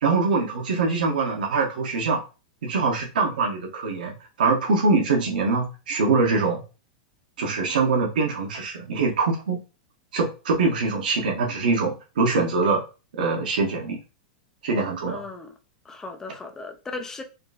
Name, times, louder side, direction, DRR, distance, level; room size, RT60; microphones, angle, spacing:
voice 1, 0.0-2.2 2.6-6.6 7.4-9.6 10.1-12.8 13.1-14.0 14.6-15.2, right 4 dB, 85° right, 1.5 m, -23 dB
voice 2, 15.1-15.5 15.9-17.2, left 3 dB, 10° left, 0.6 m, -36 dB
4.2 x 2.2 x 4.2 m
supercardioid pair, 150°, 5 cm